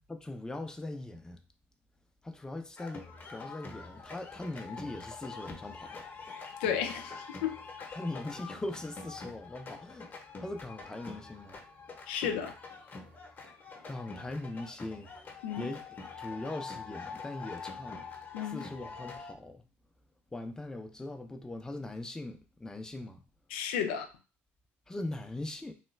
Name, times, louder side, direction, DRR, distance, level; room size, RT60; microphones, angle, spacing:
voice 1, 0.1-1.4 2.2-6.0 7.9-10.1 10.4-11.6 13.9-15.1 15.6-15.8 16.2-18.0 18.5-19.6 20.3-23.2 24.9-25.7, left 2 dB, 10° left, 0.5 m, -40 dB
sound 1, 2.8-19.3, left 4 dB, 35° left, 0.9 m, -45 dB
voice 2, 6.6-7.9 12.1-12.5 15.4-15.7 18.3-18.6 23.5-24.1, left 8 dB, 85° left, 0.4 m, -33 dB
3.1 x 2.2 x 3.2 m
supercardioid pair, 75°, 6 cm